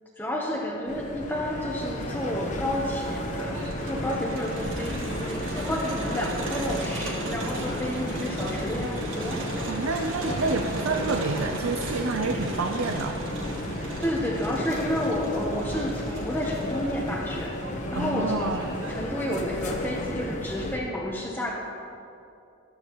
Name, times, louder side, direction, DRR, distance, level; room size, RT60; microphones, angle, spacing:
voice 1, 0.2-9.4 14.0-17.5 17.9-18.5 18.9-21.6, left 1 dB, 10° left, -2 dB, 0.9 m, -30 dB
sound 1, 0.8-20.8, left 1 dB, 35° left, 1.0 m, -34 dB
Crowd, 1.8-20.0, right 2 dB, 65° right, 1.4 m, -36 dB
voice 2, 9.7-13.5 17.9-18.6, right 3 dB, 85° right, 5 dB, 0.6 m, -29 dB
13.5 x 12.5 x 3.0 m, 2.7 s
head